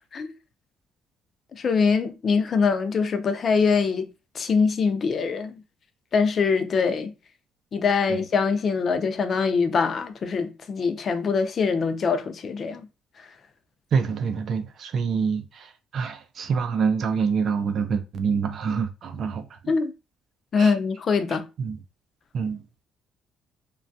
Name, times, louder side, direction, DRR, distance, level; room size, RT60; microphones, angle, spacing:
voice 1, 1.5-4.1 4.3-5.6 6.1-7.1 7.7-12.9 19.7-19.9 20.5-21.5, left 5 dB, 40° left, 0.5 m, -23 dB
voice 2, 13.9-19.7 20.6-20.7 21.6-21.8 22.3-22.6, right 6 dB, 55° right, 0.5 m, -26 dB
3.2 x 2.3 x 2.5 m
cardioid pair, 115°, 0 cm